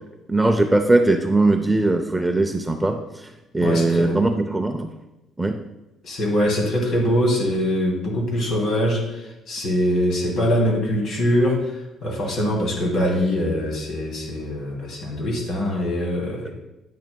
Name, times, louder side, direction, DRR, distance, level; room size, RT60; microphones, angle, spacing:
voice 1, 0.3-4.9 5.4-5.6, right 2 dB, 5° right, 5 dB, 0.5 m, -20 dB
voice 2, 3.6-4.2 6.0-11.7 12.0-16.5, equal, 55° left, -1 dB, 2.8 m, -23 dB
9.3 x 8.7 x 2.3 m, 0.98 s
cardioid pair, 135°, 0 cm